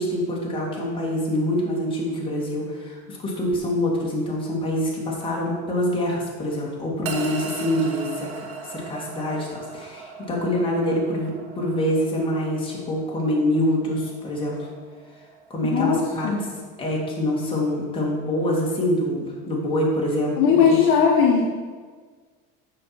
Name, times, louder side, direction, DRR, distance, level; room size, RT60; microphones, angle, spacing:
voice 1, 0.0-8.3 8.6-14.6 15.5-16.3 16.8-20.8, left 1 dB, 15° left, -4 dB, 2.1 m, -25 dB
sound 1, 7.0-17.4, right 5 dB, 50° right, 1.4 m, -39 dB
voice 2, 15.6-16.4 20.4-21.4, left 6 dB, 45° left, -1 dB, 1.2 m, -18 dB
7.5 x 5.7 x 6.0 m, 1.5 s
cardioid pair, 150°, 29 cm